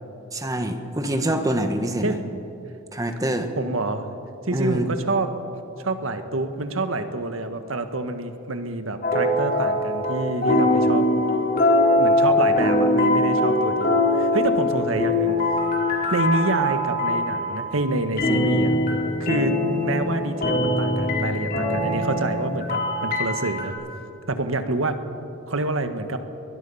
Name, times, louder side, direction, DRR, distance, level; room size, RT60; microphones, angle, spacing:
voice 1, 0.3-2.2 2.9-3.5 4.5-4.9, right 1 dB, 15° right, 6 dB, 1.4 m, -25 dB
voice 2, 3.6-4.0 4.5-5.3 5.8-11.1 12.0-15.6 16.1-18.8 19.2-23.7 24.3-25.0 25.5-26.2, right 2 dB, 80° right, 8 dB, 1.5 m, -27 dB
sound 1, 9.0-10.2 10.4-17.6 18.2-23.7, left 1 dB, 45° left, 4.1 m, -22 dB
23.0 x 20.5 x 5.6 m, 2.8 s
head